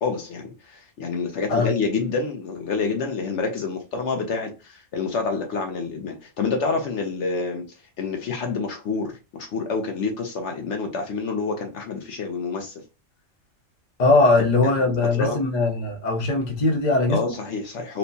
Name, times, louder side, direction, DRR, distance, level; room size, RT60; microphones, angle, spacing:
voice 1, 0.0-7.6 8.0-12.8 14.4-14.5 14.8-14.9 15.2-15.4 17.1-18.0, left 4 dB, 70° left, 0.9 m, -28 dB
voice 2, 14.0-17.3, left 3 dB, 40° left, 0.8 m, -20 dB
4.3 x 2.1 x 2.6 m
omnidirectional pair, 1.3 m